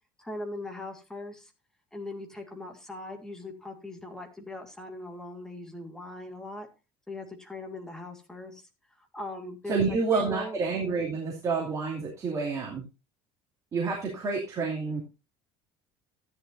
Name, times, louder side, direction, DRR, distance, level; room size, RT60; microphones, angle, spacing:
voice 1, 0.2-1.5 1.9-6.7 7.1-8.7 9.0-10.6, left 2 dB, 5° left, 3 dB, 2.0 m, -40 dB
voice 2, 9.7-12.8 13.7-15.0, right 4 dB, 30° right, -1 dB, 2.7 m, -29 dB
13.5 x 10.5 x 2.6 m, 0.28 s
cardioid pair, 155°, 11 cm